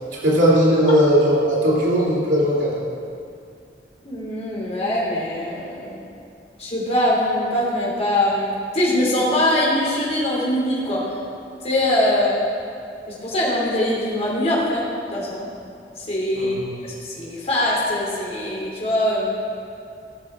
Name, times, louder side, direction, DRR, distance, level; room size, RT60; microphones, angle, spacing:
voice 1, 0.2-2.7 16.3-16.6, equal, 90° right, -7 dB, 3.0 m, -18 dB
voice 2, 4.0-6.1 6.6-11.0 11.6-12.4 13.1-15.5 16.1-16.5 16.8-19.3, left 1 dB, 35° left, -5 dB, 3.1 m, -22 dB
17.0 x 6.2 x 4.9 m, 2.4 s
head